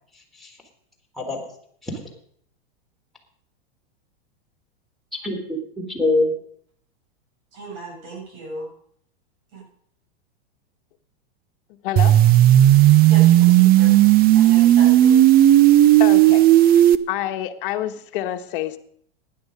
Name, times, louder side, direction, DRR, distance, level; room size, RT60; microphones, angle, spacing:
voice 1, 0.1-0.6 1.1-1.5 1.8-2.0 5.2-6.4, left 2 dB, ahead, -3 dB, 4.1 m, -25 dB
voice 2, 7.5-8.7 9.5-9.6 13.1-15.2, right 2 dB, 50° right, -1 dB, 7.3 m, -37 dB
voice 3, 11.8-12.2 16.0-16.8 17.1-18.8, left 13 dB, 60° left, 7 dB, 1.4 m, -28 dB
sound 1, 12.0-17.0, right 13 dB, 30° right, 0.6 m, -13 dB
15.5 x 10.5 x 5.3 m, 0.63 s
hypercardioid pair, 120°, 30 cm